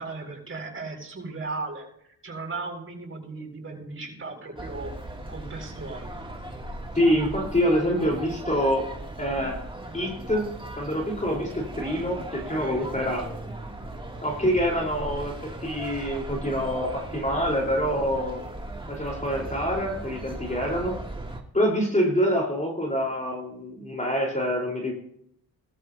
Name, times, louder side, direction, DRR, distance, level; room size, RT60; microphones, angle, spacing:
voice 1, 0.0-4.9 5.3-6.2 12.4-12.9, right 3 dB, 35° right, 2 dB, 7.7 m, -36 dB
sound 1, 4.6-21.4, right 1 dB, 15° right, 2.8 m, -38 dB
voice 2, 6.9-8.9 9.2-9.6 9.9-13.3 14.2-18.4 18.9-21.0 21.5-24.9, equal, 20° left, 0 dB, 4.5 m, -26 dB
21.0 x 13.5 x 2.9 m, 0.70 s
cardioid pair, 75°, 37 cm